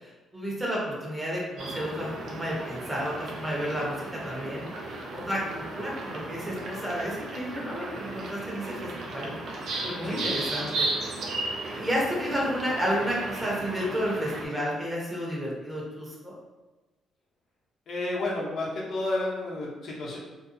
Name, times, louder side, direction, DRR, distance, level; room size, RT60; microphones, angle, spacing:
voice 1, 0.0-9.3 9.8-10.9 11.7-16.3, equal, 15° right, -4 dB, 0.8 m, -31 dB
sound 1, 1.6-14.4, right 2 dB, 70° right, 0.5 m, -35 dB
voice 2, 17.9-20.2, left 2 dB, 65° left, -4 dB, 0.7 m, -31 dB
2.5 x 2.3 x 2.5 m, 1.2 s
cardioid pair, 90°, 0 cm